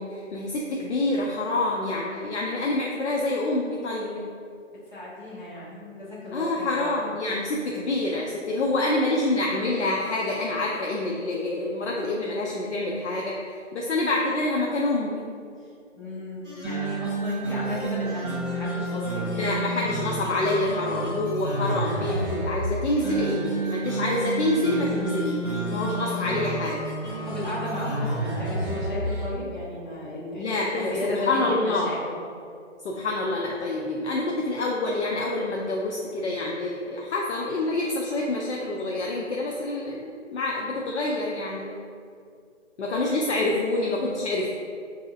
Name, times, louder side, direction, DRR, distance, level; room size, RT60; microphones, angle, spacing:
voice 1, 0.0-4.3 6.3-15.2 19.3-26.8 30.4-31.9 32.8-41.8 42.8-44.6, left 2 dB, 65° left, -2 dB, 0.5 m, -27 dB
voice 2, 4.9-7.1 15.9-19.5 27.3-32.2, left 2 dB, 35° left, -9 dB, 1.1 m, -34 dB
sound 1, 16.4-29.3, right 2 dB, 5° right, 1.2 m, -30 dB
3.9 x 2.7 x 2.6 m, 2.3 s
hypercardioid pair, 175°, 38 cm